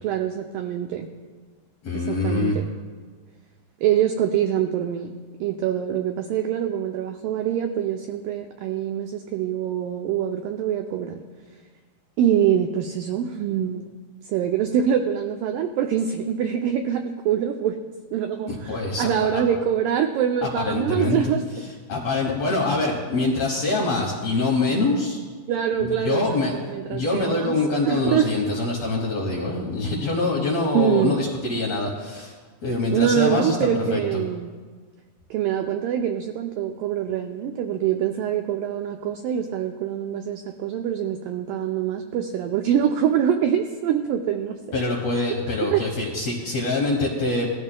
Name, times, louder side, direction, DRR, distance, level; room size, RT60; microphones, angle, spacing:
voice 1, 0.0-1.1 1.9-2.7 3.8-5.1 5.4-11.2 12.2-13.9 14.2-17.8 18.1-21.4 25.5-26.4 26.7-27.6 27.9-28.3 30.7-31.2 32.9-34.5 35.3-44.8 45.1-45.8, right 9 dB, 90° right, 5 dB, 1.9 m, -24 dB
voice 2, 1.8-2.6 18.5-19.4 20.4-21.3 21.6-25.2 25.8-26.6 26.9-32.4 32.6-34.2 44.7-47.5, left 2 dB, 65° left, -2 dB, 1.7 m, -25 dB
18.0 x 13.0 x 2.2 m, 1.5 s
omnidirectional pair, 4.5 m